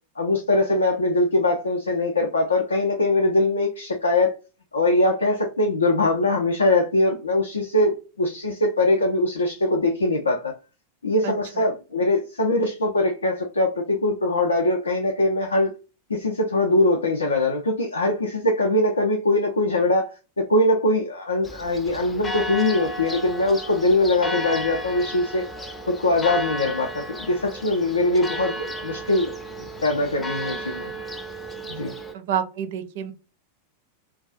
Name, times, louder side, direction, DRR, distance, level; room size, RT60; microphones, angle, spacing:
voice 1, 0.2-4.3 4.7-10.5 11.0-15.7 16.1-20.1 20.4-25.4 25.9-29.4 29.8-30.9 31.7-31.9, left 2 dB, 75° left, 0.4 m, -22 dB
voice 2, 11.2-11.7 32.1-33.1, right 9 dB, 55° right, 0.4 m, -29 dB
Church bell, 21.4-32.1, equal, 10° left, 0.5 m, -34 dB
2.3 x 2.3 x 2.5 m
figure-of-eight pair, 90°, 0 cm